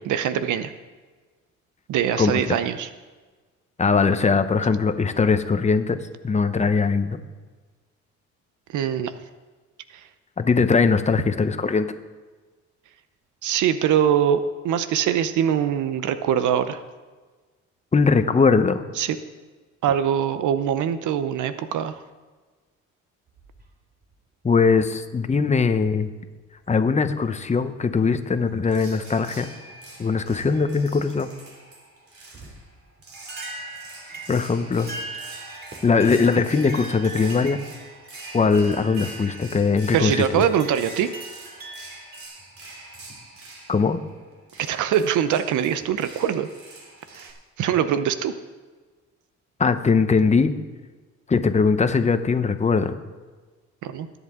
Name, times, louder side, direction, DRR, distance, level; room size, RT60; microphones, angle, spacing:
voice 1, 0.1-0.7 1.9-2.9 8.7-9.1 9.9-10.1 13.4-16.8 19.0-19.2 19.8-22.0 39.9-41.1 44.6-46.5 47.1-47.3 47.6-48.3 53.8-54.1, right 9 dB, 80° right, 11 dB, 0.8 m, -23 dB
voice 2, 2.2-2.6 3.8-6.0 6.2-7.2 10.4-11.9 17.9-18.8 24.4-26.1 26.7-29.5 30.0-31.3 34.3-34.9 35.8-37.6 38.3-40.4 43.7-44.0 49.6-50.5 51.3-52.9, left 4 dB, 25° left, 9 dB, 0.9 m, -20 dB
sound 1, 23.3-24.1 25.3-25.4 26.4-26.7 27.3-27.5 28.1-28.2 29.4-30.1 30.5-31.3 32.4-32.5 33.1-42.2, right 2 dB, 30° right, 2.4 m, -40 dB
sound 2, 28.7-47.3, right 2 dB, 50° right, 3.2 m, -45 dB
20.5 x 8.1 x 3.7 m, 1.3 s
cardioid pair, 90°, 30 cm